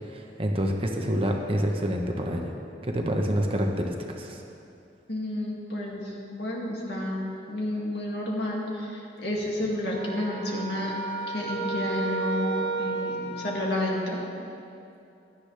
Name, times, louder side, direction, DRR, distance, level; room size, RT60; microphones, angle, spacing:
voice 1, 0.1-2.5 2.8-4.4, equal, 30° right, 2 dB, 1.0 m, -27 dB
voice 2, 5.1-10.9 11.3-14.2, left 1 dB, 65° left, -3 dB, 2.3 m, -31 dB
sound 1, 9.8-14.3, right 3 dB, 35° left, 2.6 m, -32 dB
16.5 x 12.0 x 3.4 m, 2.7 s
head